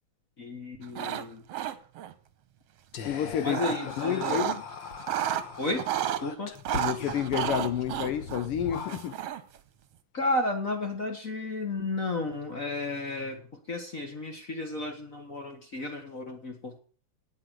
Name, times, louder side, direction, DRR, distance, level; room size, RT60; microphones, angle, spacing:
voice 1, 0.4-1.4 3.4-4.5 5.6-5.9 6.2-6.5 10.1-16.8, left 2 dB, 35° left, 1.4 m, -33 dB
sound 1, 0.8-1.2 1.5-2.1 3.1-4.6 4.9-6.2 6.6-9.6, right 11 dB, 65° right, 1.8 m, -32 dB
Whispering, 2.9-9.4, left 5 dB, 50° left, 1.5 m, -41 dB
voice 2, 3.0-3.6 4.0-4.6 6.8-9.1, left 10 dB, 85° left, 1.2 m, -30 dB
18.0 x 5.9 x 6.4 m
omnidirectional pair, 3.4 m